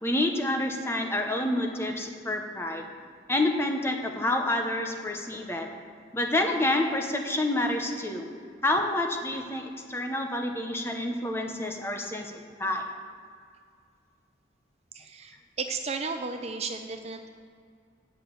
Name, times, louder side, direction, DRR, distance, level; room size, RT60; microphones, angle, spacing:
voice 1, 0.0-2.9 3.3-5.7 6.1-8.3 8.6-12.8, left 1 dB, 15° left, 3 dB, 0.9 m, -28 dB
voice 2, 14.9-17.3, right 4 dB, 35° right, 6 dB, 0.5 m, -34 dB
9.0 x 6.1 x 8.2 m, 2.2 s
head